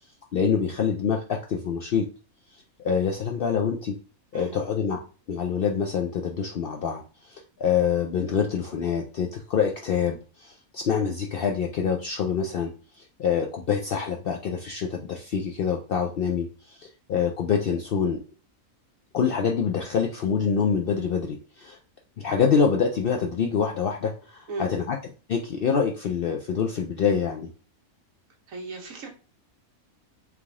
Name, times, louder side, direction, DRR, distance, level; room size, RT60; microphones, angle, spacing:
voice 1, 0.3-2.1 2.5-3.9 4.3-5.0 5.3-18.2 19.1-21.8 22.2-25.0 25.3-27.5, left 6 dB, 75° left, 1 dB, 0.5 m, -26 dB
voice 2, 28.5-29.1, right 3 dB, 70° right, 2 dB, 1.4 m, -35 dB
3.6 x 3.2 x 3.5 m, 0.37 s
omnidirectional pair, 1.5 m